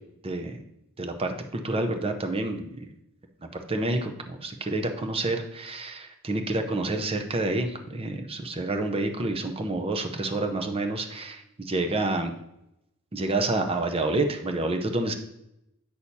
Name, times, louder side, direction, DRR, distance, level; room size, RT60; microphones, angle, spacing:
voice 1, 0.2-0.6 1.0-2.8 3.5-12.3 13.1-15.1, right 2 dB, 25° right, 5 dB, 0.7 m, -28 dB
8.5 x 6.3 x 2.7 m, 0.84 s
head